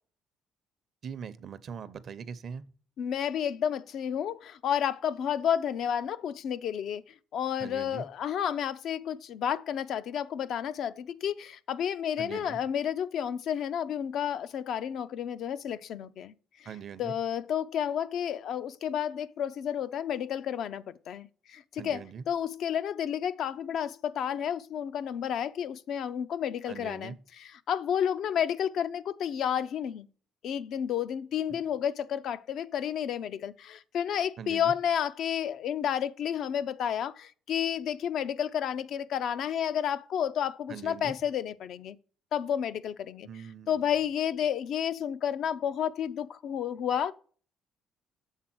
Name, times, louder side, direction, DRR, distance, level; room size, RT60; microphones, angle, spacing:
voice 1, 1.0-2.6 7.6-8.1 12.2-12.6 16.6-17.1 21.8-22.3 26.7-27.2 31.5-31.6 34.4-34.7 40.7-41.2 43.2-43.8, right 7 dB, 55° right, 0.6 m, -41 dB
voice 2, 3.0-7.0 7.3-16.3 17.0-22.0 22.3-30.1 30.4-42.0 42.3-43.3 43.7-47.1, left 9 dB, 65° left, 0.4 m, -31 dB
7.4 x 3.7 x 6.0 m
supercardioid pair, 80°, 0 cm